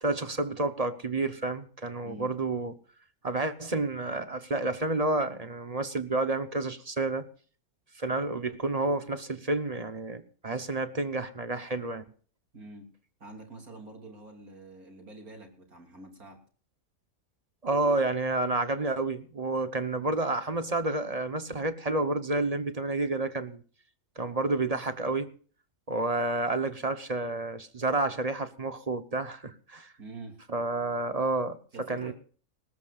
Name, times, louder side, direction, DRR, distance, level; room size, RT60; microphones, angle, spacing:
voice 1, 0.0-2.7 3.2-7.3 8.0-12.0 17.6-23.6 24.2-25.3 25.9-29.9 30.5-31.6 31.9-32.1, right 2 dB, 30° right, 0.9 m, -30 dB
voice 2, 2.0-2.4 12.5-12.9 13.2-16.4 30.0-30.4 31.7-32.1, right 2 dB, 85° right, 3.6 m, -46 dB
20.5 x 19.0 x 2.5 m
omnidirectional pair, 1.5 m